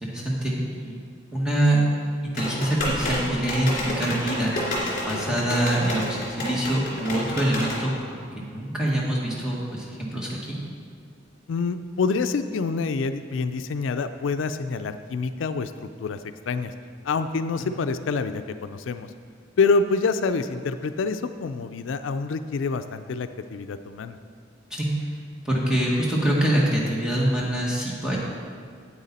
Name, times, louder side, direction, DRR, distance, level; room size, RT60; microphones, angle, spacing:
voice 1, 0.0-1.0 1.3-1.8 2.2-4.5 5.0-10.6 17.6-17.7 24.7-25.1 25.4-28.2, right 1 dB, 5° right, -5 dB, 1.7 m, -25 dB
sound 1, 2.4-7.8, left 1 dB, 45° left, 2.6 m, -30 dB
voice 2, 11.5-15.7 16.0-16.2 16.5-16.7 17.0-19.1 19.6-24.2, left 4 dB, 90° left, 10 dB, 0.4 m, -26 dB
9.0 x 8.6 x 4.2 m, 2.1 s
head